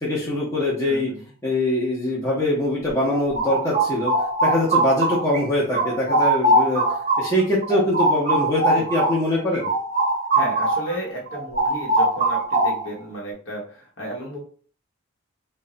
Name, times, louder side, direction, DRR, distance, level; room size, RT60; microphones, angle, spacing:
voice 1, 0.0-1.1 1.4-4.1 4.4-6.8 7.2-9.7, left 1 dB, 15° left, -6 dB, 0.8 m, -23 dB
voice 2, 0.9-1.3 10.3-14.4, right 1 dB, 65° left, -2 dB, 1.0 m, -33 dB
sound 1, 2.9-5.4 5.7-10.9 11.3-13.0, right 2 dB, 35° right, 0.6 m, -22 dB
3.0 x 2.2 x 3.7 m, 0.44 s
head